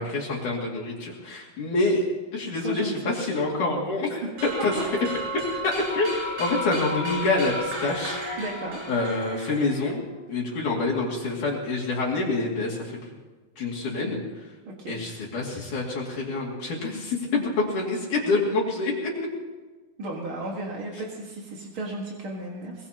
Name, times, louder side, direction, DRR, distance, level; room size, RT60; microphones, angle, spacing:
voice 1, 0.0-2.1 2.3-4.2 4.6-4.7 5.3-8.2 8.9-13.0 13.6-14.5 14.9-19.1, left 3 dB, 55° left, -4 dB, 3.7 m, -27 dB
sound 1, 4.4-10.0, left 1 dB, 70° right, 8.5 m, -33 dB
voice 2, 8.4-8.8 14.6-15.0 20.0-22.9, right 2 dB, 45° right, -2 dB, 1.7 m, -34 dB
22.5 x 21.5 x 2.9 m, 1.3 s
omnidirectional pair, 4.6 m